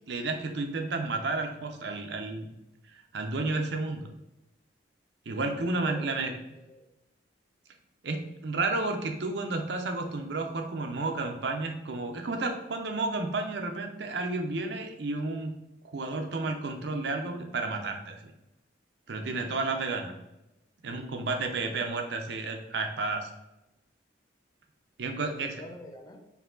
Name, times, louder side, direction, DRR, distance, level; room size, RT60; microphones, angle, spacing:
voice 1, 0.1-2.5 2.9-4.1 5.3-6.3 8.0-15.5 15.8-18.2 19.1-20.1 20.8-23.3 25.0-25.6, right 3 dB, 65° right, 4 dB, 0.6 m, -32 dB
voice 2, 5.8-6.9 21.7-21.8 25.2-26.3, left 1 dB, 20° left, 2 dB, 0.5 m, -46 dB
4.7 x 2.8 x 3.8 m, 0.92 s
head